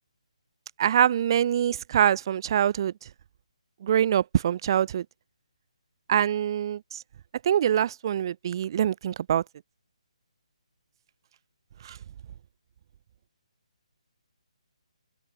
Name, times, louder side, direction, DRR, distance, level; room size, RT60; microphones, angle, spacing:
voice 1, 0.8-2.9 3.8-5.0 6.1-7.0 7.4-9.4 11.8-12.0, right 10 dB, 40° right, 6.7 m, -24 dB
open air
hypercardioid pair, 155°, 4 cm